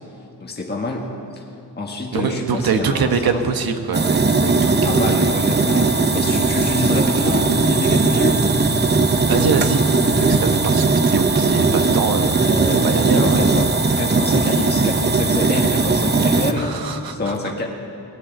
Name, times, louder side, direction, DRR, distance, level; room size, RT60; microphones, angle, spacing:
voice 1, 0.4-1.4 1.8-3.4 4.8-8.4 12.4-12.8 13.2-17.7, left 2 dB, 25° left, 0 dB, 1.6 m, -27 dB
voice 2, 2.1-5.2 9.3-9.8 10.2-13.5 16.6-17.3, right 5 dB, 65° right, 7 dB, 1.2 m, -23 dB
sound 1, 3.9-16.5, right 3 dB, 25° right, 0.8 m, -18 dB
17.5 x 9.5 x 8.0 m, 2.6 s
cardioid pair, 100°, 39 cm